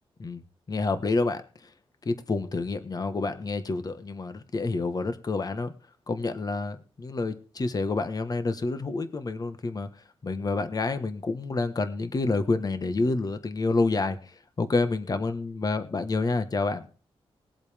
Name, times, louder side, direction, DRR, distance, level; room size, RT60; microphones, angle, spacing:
voice 1, 0.7-1.4 2.0-5.7 6.1-9.9 10.2-16.9, left 3 dB, 40° left, 10 dB, 1.3 m, -28 dB
20.5 x 8.0 x 3.5 m, 0.39 s
wide cardioid pair, 110°, 10 cm